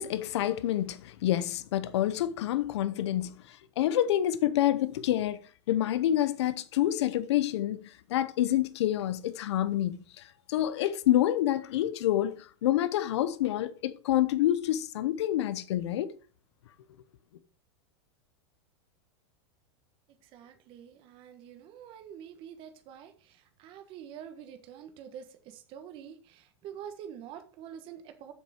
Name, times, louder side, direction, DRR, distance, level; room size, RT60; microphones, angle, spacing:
voice 1, 0.0-5.4 5.7-16.1, left 12 dB, 80° left, 0.8 m, -28 dB
voice 2, 20.2-28.3, right 9 dB, 40° right, 1.3 m, -46 dB
7.4 x 6.6 x 4.8 m
supercardioid pair, 150°, 14 cm